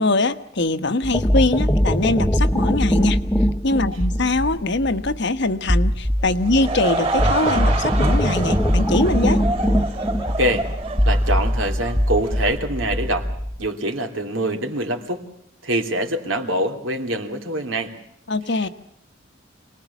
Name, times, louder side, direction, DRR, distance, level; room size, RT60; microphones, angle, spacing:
voice 1, 0.0-3.2 3.6-9.4 18.3-18.7, left 2 dB, 60° left, 10 dB, 1.3 m, -22 dB
sound 1, 1.0-13.7, equal, 10° left, 1.0 m, -21 dB
Laughter / Crowd, 6.2-12.5, right 3 dB, 30° right, 2.9 m, -27 dB
voice 2, 10.4-10.7 11.0-13.3 13.6-15.2 15.6-18.0 18.5-18.7, right 1 dB, 75° right, 5 dB, 3.3 m, -24 dB
27.0 x 20.0 x 7.2 m, 0.73 s
head